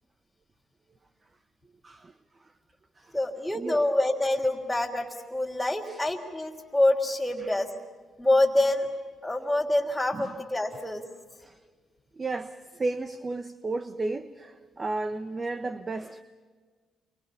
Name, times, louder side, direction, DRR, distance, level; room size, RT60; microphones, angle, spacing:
voice 1, 3.1-7.7 8.2-8.9 9.2-11.1, left 1 dB, ahead, 3.4 m, -26 dB
voice 2, 12.1-16.2, right 3 dB, 30° right, 1.1 m, -34 dB
29.5 x 24.5 x 5.6 m
cardioid pair, 90°, 0 cm